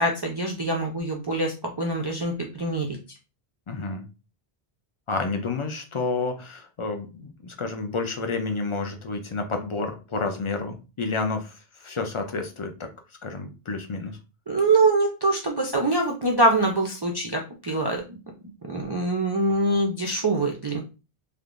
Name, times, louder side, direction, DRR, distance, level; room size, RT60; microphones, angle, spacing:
voice 1, 0.0-3.0 14.5-18.2 18.6-20.8, right 2 dB, 40° right, -1 dB, 0.3 m, -24 dB
voice 2, 3.7-4.0 5.1-12.9 13.2-14.2, left 3 dB, 45° left, 5 dB, 0.4 m, -30 dB
3.5 x 2.8 x 2.4 m, 0.32 s
omnidirectional pair, 1.0 m